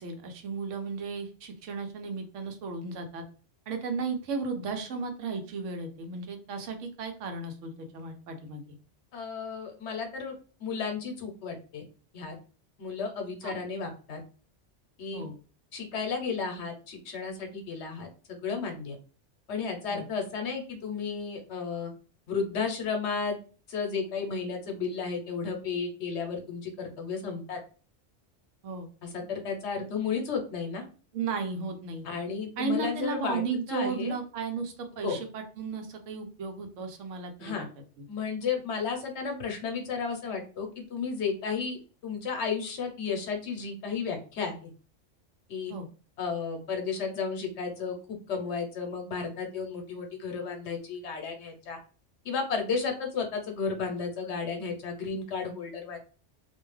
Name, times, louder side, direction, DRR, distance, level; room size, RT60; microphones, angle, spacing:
voice 1, 0.0-3.2 3.7-8.6 13.4-13.6 15.1-15.3 19.9-20.0 28.6-28.9 31.1-32.0 32.6-37.7 38.0-38.1 45.7-45.9, right 4 dB, 85° right, 5 dB, 1.0 m, -34 dB
voice 2, 9.1-10.3 10.6-11.8 12.1-12.3 12.8-14.2 15.0-15.3 15.7-19.0 19.5-21.9 22.3-23.4 23.7-27.6 29.0-30.8 32.0-33.4 33.7-34.1 35.0-35.2 37.4-37.7 38.1-44.6 45.5-45.7 46.2-51.8 52.2-56.0, left 5 dB, 70° left, 3 dB, 0.9 m, -33 dB
2.5 x 2.2 x 3.1 m, 0.38 s
omnidirectional pair, 1.3 m